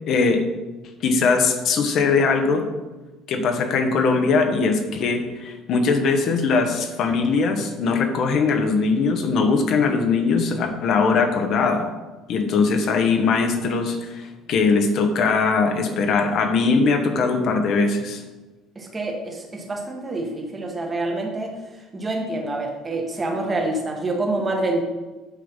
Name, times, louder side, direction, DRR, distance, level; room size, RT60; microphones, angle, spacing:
voice 1, 0.1-0.4 1.0-2.6 3.3-11.9 12.3-18.2, left 4 dB, 50° left, 6 dB, 1.2 m, -21 dB
voice 2, 18.7-21.5 21.9-24.8, right 2 dB, 15° right, 1 dB, 1.4 m, -27 dB
8.4 x 5.6 x 5.5 m, 1.2 s
cardioid pair, 155°, 0 cm